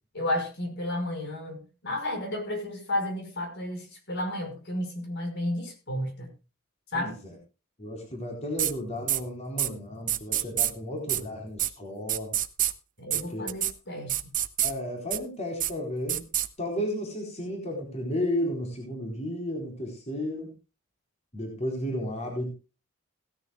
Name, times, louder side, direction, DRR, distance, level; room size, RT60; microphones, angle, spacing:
voice 1, 0.1-6.3 6.9-7.2 13.0-14.2, left 1 dB, 55° left, 5.3 m, -32 dB
voice 2, 6.9-7.3 7.8-12.3 13.1-13.5 14.6-16.3 16.6-20.5 21.3-22.5, left 1 dB, 35° left, 4.3 m, -33 dB
sound 1, 8.6-8.7 9.1-9.2 9.6-9.7 10.1-10.7 11.1-11.2 11.6-11.7 12.1-12.7 13.1-13.2 13.5-13.7 14.1-14.7 15.1-15.2 15.6-15.7 16.1-16.5, right 12 dB, 40° right, 1.0 m, -26 dB
17.5 x 13.5 x 2.4 m
head